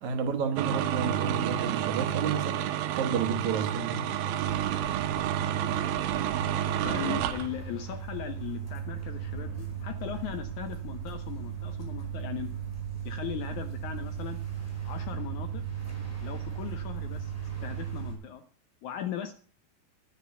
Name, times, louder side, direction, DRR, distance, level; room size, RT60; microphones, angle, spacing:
voice 1, 0.0-2.6 2.9-4.1, right 6 dB, 60° right, 2.4 m, -31 dB
sound 1, 0.6-7.5, right 11 dB, 85° right, 2.7 m, -30 dB
sound 2, 4.4-18.1, right 8 dB, 5° left, 4.4 m, -37 dB
voice 2, 6.8-12.5 13.1-14.4 14.8-15.6 16.2-17.3 17.6-18.4 18.8-19.3, left 10 dB, 70° left, 1.9 m, -38 dB
10.5 x 10.0 x 6.8 m
omnidirectional pair, 4.2 m